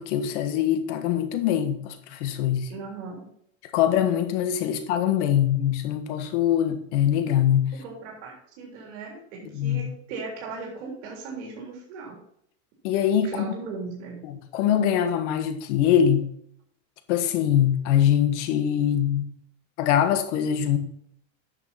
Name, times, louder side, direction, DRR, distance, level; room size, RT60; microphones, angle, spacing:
voice 1, 0.0-2.7 3.7-7.7 9.5-9.8 12.8-13.3 14.2-16.3 17.1-19.2 19.8-20.8, left 10 dB, 80° left, 1.6 m, -23 dB
voice 2, 2.7-3.3 7.7-12.2 13.2-14.2, right 4 dB, 85° right, 3.5 m, -38 dB
9.9 x 6.7 x 4.2 m
cardioid pair, 150°, 35 cm